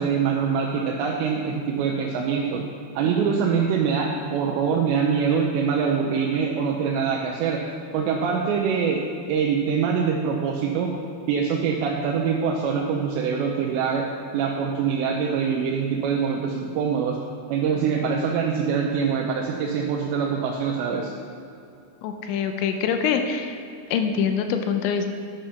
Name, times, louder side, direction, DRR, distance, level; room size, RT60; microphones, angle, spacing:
voice 1, 0.0-2.6 3.0-7.6 7.9-9.0 9.3-10.9 11.3-14.1 14.3-17.2 17.5-21.1, right 6 dB, 75° right, -1 dB, 2.8 m, -24 dB
voice 2, 22.0-23.6 23.9-25.1, left 7 dB, 80° left, 6 dB, 2.9 m, -24 dB
10.5 x 10.0 x 5.8 m, 2.6 s
omnidirectional pair, 5.7 m